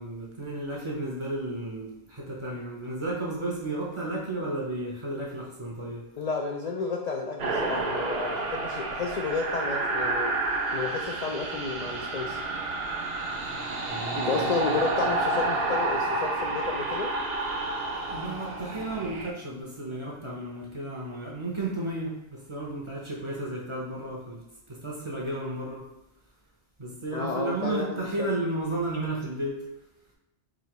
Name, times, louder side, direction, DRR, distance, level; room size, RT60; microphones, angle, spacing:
voice 1, 0.0-6.1 13.9-14.7 18.1-25.9 26.8-29.6, right 2 dB, 30° right, -3 dB, 0.7 m, -33 dB
voice 2, 6.2-10.3 10.7-12.4 14.2-17.1 27.1-28.3, left 4 dB, 65° left, 0 dB, 0.4 m, -31 dB
sound 1, 7.4-19.3, right 2 dB, 60° right, 0.8 m, -30 dB
5.0 x 2.7 x 3.0 m, 0.93 s
omnidirectional pair, 1.2 m